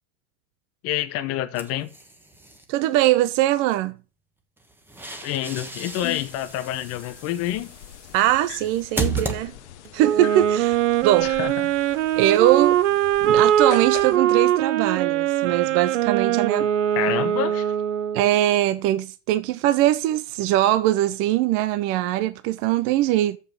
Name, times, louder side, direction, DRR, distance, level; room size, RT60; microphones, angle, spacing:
voice 1, 0.8-1.9 5.2-7.7 11.4-11.7 17.0-17.7, left 13 dB, 40° left, 1.1 m, -28 dB
sound 1, 1.5-2.7 4.6-10.0, right 3 dB, 5° right, 1.2 m, -34 dB
voice 2, 2.7-4.0 8.1-9.6 9.9-11.3 12.2-12.8 13.2-16.7 18.1-23.4, right 14 dB, 35° right, 0.5 m, -21 dB
sound 2, 5.9-14.2, left 15 dB, 65° left, 0.8 m, -42 dB
Wind instrument woodwind instrument, 10.0-18.3, right 11 dB, 80° right, 0.7 m, -21 dB
7.0 x 5.4 x 5.8 m
hypercardioid pair, 125°, 37 cm